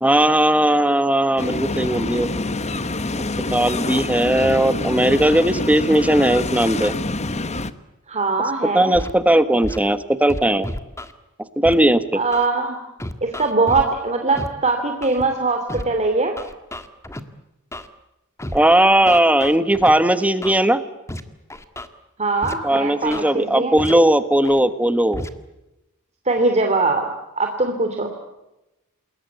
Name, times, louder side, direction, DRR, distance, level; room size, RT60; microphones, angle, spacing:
voice 1, 0.0-2.3 3.5-6.9 8.7-10.7 11.6-12.2 18.5-20.8 22.6-25.3, right 1 dB, 5° right, 11 dB, 1.4 m, -17 dB
sound 1, 1.4-7.7, left 2 dB, 30° left, 1.2 m, -26 dB
voice 2, 8.1-8.9 12.1-12.8 13.2-16.3 22.2-23.8 26.3-27.1 27.4-28.1, right 3 dB, 30° right, 4 dB, 2.8 m, -21 dB
Scratching (performance technique), 8.9-9.1 9.6-9.8 10.3-11.1 11.6-11.7 12.3-12.5 13.0-13.8 14.3-14.5 15.0-15.2 15.7-15.8 16.4-17.2 17.7-17.9 18.4-18.6 19.1-19.9 20.4-20.6 21.1-21.2 21.5-21.9 22.4-22.5 23.0-23.2 23.8-23.9 24.4-24.6 25.1-25.3, left 1 dB, 15° left, 1.7 m, -31 dB
29.0 x 21.0 x 8.2 m, 0.97 s
head